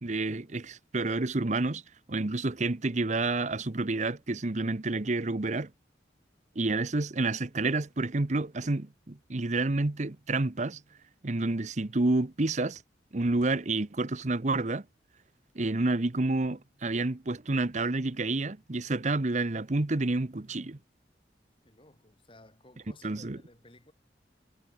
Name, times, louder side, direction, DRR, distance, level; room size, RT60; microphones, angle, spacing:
voice 1, 0.0-1.8 2.1-5.7 6.6-10.8 11.2-12.8 13.1-14.8 15.5-20.8 23.0-23.4, right 2 dB, 40° right, 0.9 m, -29 dB
voice 2, 21.6-23.9, left 1 dB, 30° left, 7.3 m, -56 dB
head